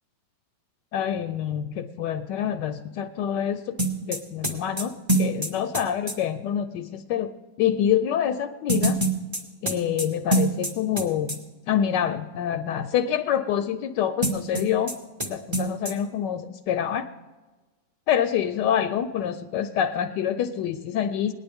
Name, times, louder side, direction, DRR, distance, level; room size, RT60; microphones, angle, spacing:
voice 1, 0.9-7.3 7.6-9.0 9.6-11.4 11.7-14.9 15.3-17.1 18.1-21.3, left 9 dB, 75° left, 9 dB, 1.1 m, -26 dB
sound 1, 3.8-6.2 8.7-11.0 11.3-11.4 14.2-14.9 15.2-15.3 15.5-15.9, right 2 dB, 20° right, 1.0 m, -25 dB
18.5 x 10.5 x 3.5 m, 1.2 s
omnidirectional pair, 2.0 m